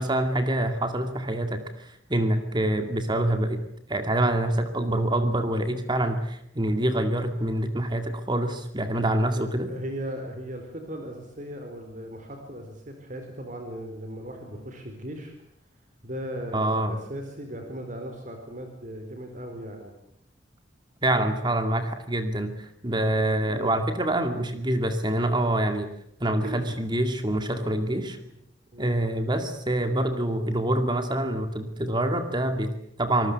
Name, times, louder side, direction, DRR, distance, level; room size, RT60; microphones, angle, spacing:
voice 1, 0.0-3.6 3.9-9.7 16.5-17.0 21.0-25.9 26.2-28.2 28.8-33.3, right 1 dB, 25° right, 7 dB, 2.2 m, -26 dB
voice 2, 9.4-15.3 16.0-19.9 23.5-23.8 26.4-26.7 28.2-28.3 28.7-29.0, equal, 45° right, 4 dB, 4.3 m, -37 dB
26.5 x 20.0 x 8.2 m, 0.72 s
head